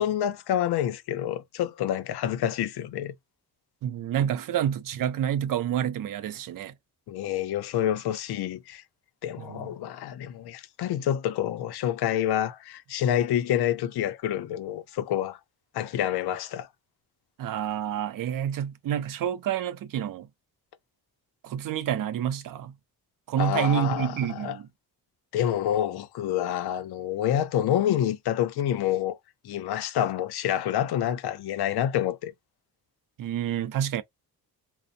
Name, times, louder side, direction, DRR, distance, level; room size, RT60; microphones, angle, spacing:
voice 1, 0.0-3.1 7.1-8.8 9.2-15.4 15.7-16.7 23.4-24.6 25.3-29.2 29.4-32.3, left 11 dB, 90° left, 0.5 m, -27 dB
voice 2, 3.8-6.7 9.4-9.7 17.4-20.3 21.4-22.7 23.3-24.7 33.2-34.0, right 10 dB, 60° right, 0.5 m, -28 dB
2.5 x 2.1 x 2.6 m
wide cardioid pair, 165°, 38 cm